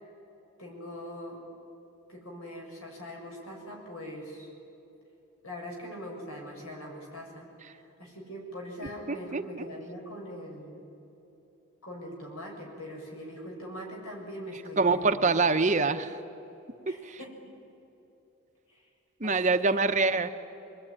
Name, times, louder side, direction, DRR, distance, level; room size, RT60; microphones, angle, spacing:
voice 1, 0.6-1.4 2.1-4.5 5.4-10.8 11.8-15.8 16.9-17.5 18.7-18.9 19.2-19.8, equal, 75° left, 0 dB, 7.1 m, -42 dB
voice 2, 9.1-9.6 14.8-16.1 17.1-17.2 19.2-20.3, right 3 dB, 35° right, 8 dB, 0.9 m, -25 dB
26.0 x 20.5 x 10.0 m, 3.0 s
head